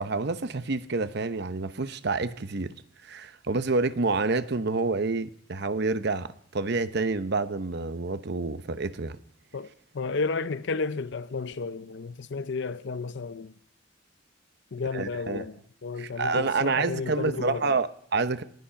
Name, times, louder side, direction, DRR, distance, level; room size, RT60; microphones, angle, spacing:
voice 1, 0.0-2.8 3.0-9.2 14.9-15.4 16.0-18.4, right 3 dB, 60° right, 0.8 m, -28 dB
voice 2, 9.5-13.5 14.7-15.6 15.8-17.7, left 4 dB, 65° left, 0.6 m, -32 dB
19.5 x 11.5 x 5.8 m
head